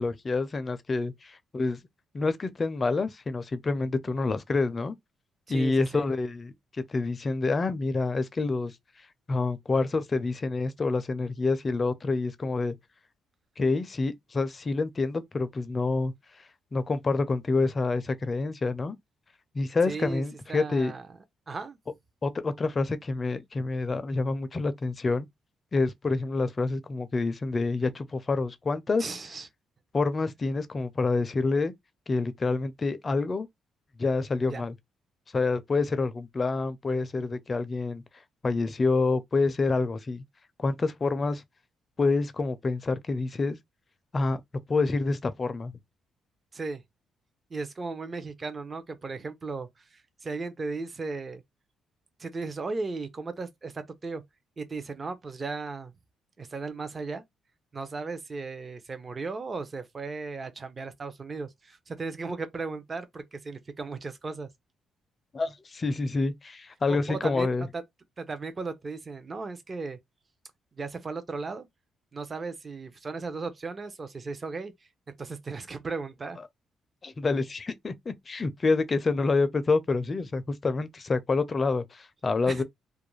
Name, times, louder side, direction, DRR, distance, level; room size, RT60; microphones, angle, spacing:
voice 1, 0.0-1.8 2.1-4.9 5.5-8.7 9.3-12.7 13.6-16.1 16.7-19.0 19.5-20.9 22.2-25.3 25.7-29.0 29.9-31.7 32.1-33.5 34.0-34.7 35.3-38.0 38.4-40.2 40.6-41.4 42.0-43.6 44.1-44.4 44.7-45.7 65.3-67.7 77.0-82.6, left 3 dB, 35° left, 0.4 m, -27 dB
voice 2, 5.5-6.1 19.9-20.2 20.5-21.1 21.5-21.8 29.0-29.5 34.5-34.6 46.5-46.8 47.5-51.4 52.2-54.2 54.6-55.9 56.4-57.2 57.7-64.5 66.9-67.8 68.2-70.0 70.8-71.7 72.1-74.7 75.1-76.4 82.5-82.6, right 3 dB, 35° right, 0.5 m, -36 dB
2.4 x 2.2 x 3.0 m
cardioid pair, 90°, 0 cm